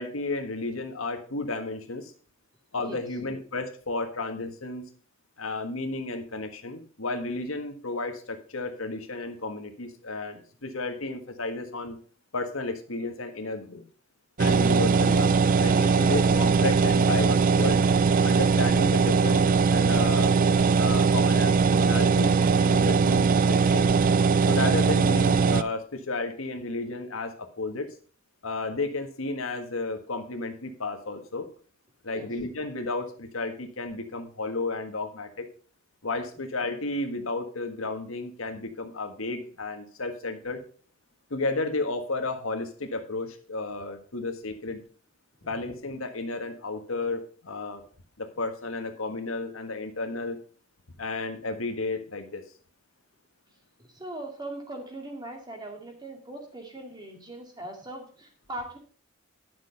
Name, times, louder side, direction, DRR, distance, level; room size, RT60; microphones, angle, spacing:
voice 1, 0.0-2.1 2.7-4.9 5.4-12.0 12.3-13.8 14.4-17.8 18.2-20.3 20.8-23.9 24.5-27.9 28.4-31.5 32.0-35.5 36.0-40.6 41.3-44.8 45.4-47.8 48.2-50.4 51.0-52.4, left 3 dB, 85° left, 6 dB, 1.6 m, -32 dB
sound 1, 14.4-25.6, right 5 dB, 40° right, 0.3 m, -21 dB
voice 2, 53.9-58.8, right 1 dB, 20° right, 2 dB, 2.2 m, -40 dB
11.0 x 6.3 x 5.4 m, 0.43 s
head